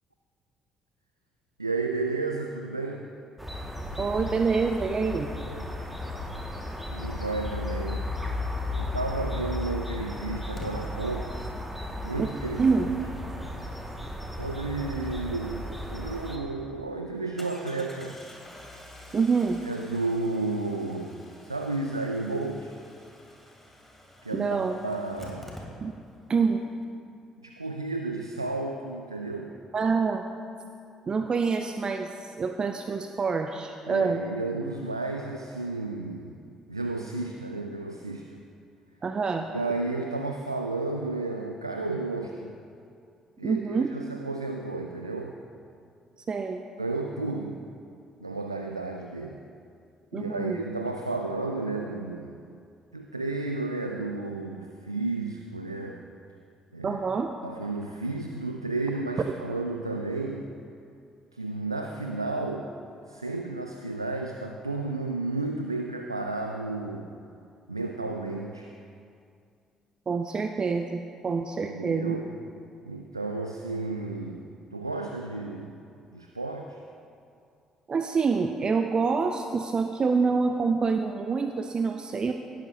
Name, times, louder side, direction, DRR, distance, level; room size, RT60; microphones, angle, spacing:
voice 1, 1.6-3.1 6.9-8.1 8.7-11.3 12.0-12.9 14.3-18.2 19.6-22.8 24.2-25.5 26.4-26.5 27.4-29.5 33.9-36.4 36.7-38.4 39.5-42.6 43.4-45.4 46.8-47.6 48.2-49.4 50.1-52.3 52.9-56.0 56.7-57.0 57.4-60.5 61.3-62.7 63.1-67.1 67.7-68.7 71.7-72.3 72.9-74.4 74.7-75.8 76.1-76.8, right 3 dB, 90° right, 3 dB, 0.4 m, -32 dB
sound 1, 3.4-16.4, left 1 dB, 5° right, 1.8 m, -34 dB
voice 2, 4.0-5.3 12.2-12.3 12.6-12.9 19.1-19.6 24.3-24.8 25.8-25.9 26.3-26.6 29.7-30.2 31.1-34.2 39.0-39.5 43.4-44.0 46.3-46.6 50.1-50.6 56.8-57.3 70.1-72.2 77.9-82.3, right 4 dB, 35° right, 6 dB, 0.6 m, -26 dB
Engine starting, 10.6-10.7 15.8-15.9 16.2-16.3 17.4-26.2 26.5-26.6 26.8-26.9, left 1 dB, 10° left, 2.7 m, -48 dB
17.5 x 12.0 x 2.8 m, 2.4 s
figure-of-eight pair, 45°, 2 cm